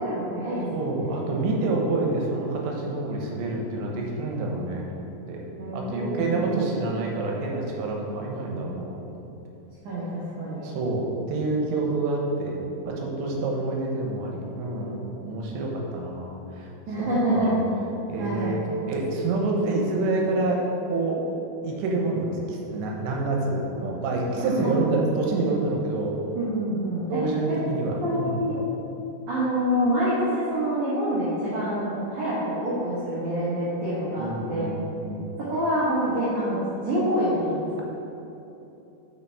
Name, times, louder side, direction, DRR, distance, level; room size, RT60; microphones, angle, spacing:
voice 1, 0.0-1.1 5.6-6.6 9.8-10.7 16.9-17.5 18.2-18.6 24.3-24.8 26.3-27.2 28.0-28.6 29.3-34.7 35.4-37.8, equal, 60° right, -11 dB, 2.3 m, -27 dB
voice 2, 0.7-5.4 5.7-9.0 10.6-12.6 12.8-16.7 17.3-17.6 18.1-20.6 20.9-21.2 21.6-26.2 27.1-28.4 34.2-35.2, right 2 dB, 85° right, -1 dB, 3.1 m, -27 dB
6.8 x 5.9 x 3.4 m, 3.0 s
omnidirectional pair, 4.9 m